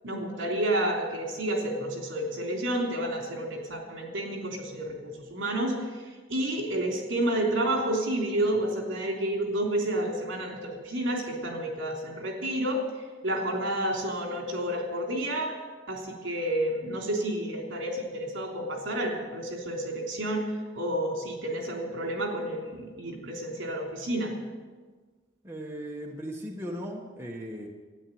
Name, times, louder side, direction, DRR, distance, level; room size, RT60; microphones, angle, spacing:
voice 1, 0.0-12.8 13.2-15.6 15.9-24.3, right 1 dB, 70° right, 1 dB, 3.4 m, -30 dB
voice 2, 25.4-27.7, equal, 15° right, -1 dB, 1.4 m, -37 dB
12.5 x 10.0 x 8.8 m, 1.4 s
head